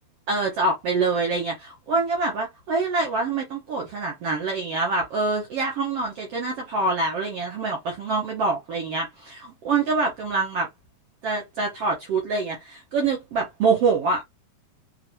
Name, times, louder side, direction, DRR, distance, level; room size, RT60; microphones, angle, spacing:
voice 1, 0.3-10.7 11.2-14.2, right 3 dB, 65° right, 1.5 m, -25 dB
7.2 x 2.6 x 2.7 m
omnidirectional pair, 4.1 m